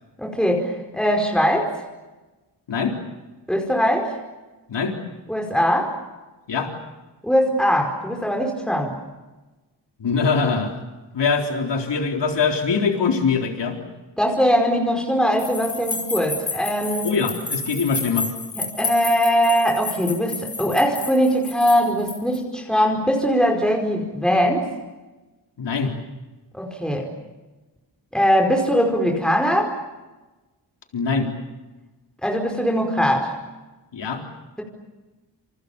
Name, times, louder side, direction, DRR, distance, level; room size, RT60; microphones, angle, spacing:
voice 1, 0.2-1.7 3.5-4.1 5.3-5.9 7.2-8.9 14.2-17.1 18.5-24.7 26.5-27.1 28.1-29.7 32.2-33.3, equal, ahead, 1 dB, 4.9 m, -21 dB
voice 2, 10.0-10.8 11.1-13.8 17.0-18.3 25.6-25.9 30.9-31.3 33.9-34.2, left 5 dB, 80° left, 2 dB, 4.1 m, -22 dB
sound 1, 15.4-22.4, left 3 dB, 55° left, 5.6 m, -31 dB
29.5 x 28.0 x 7.1 m, 1.1 s
wide cardioid pair, 120°, 42 cm